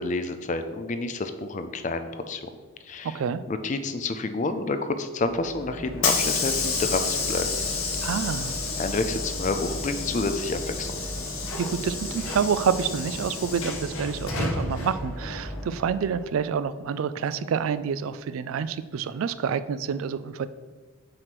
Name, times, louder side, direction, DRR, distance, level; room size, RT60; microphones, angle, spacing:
voice 1, 0.0-2.4 2.9-3.2 3.5-7.5 8.8-10.9, left 3 dB, 35° left, 9 dB, 0.4 m, -29 dB
voice 2, 3.0-3.4 8.0-8.6 11.6-20.5, right 7 dB, 75° right, 14 dB, 0.3 m, -28 dB
Hiss / Sliding door, 5.3-16.2, left 3 dB, 80° left, 1.3 m, -30 dB
7.7 x 3.1 x 5.9 m, 1.4 s
head